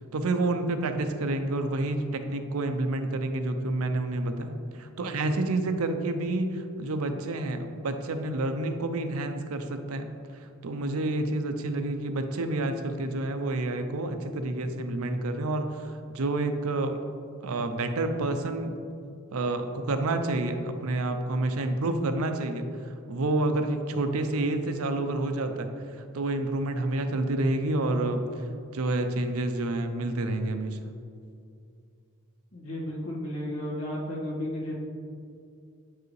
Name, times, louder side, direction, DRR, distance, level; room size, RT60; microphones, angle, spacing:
voice 1, 0.1-10.1 10.6-17.0 17.4-18.7 19.3-25.7 26.1-28.2 28.7-30.8, right 2 dB, 80° right, 7 dB, 0.5 m, -29 dB
voice 2, 32.5-34.7, left 1 dB, 80° left, -4 dB, 1.6 m, -33 dB
7.9 x 4.8 x 3.2 m, 2.4 s
head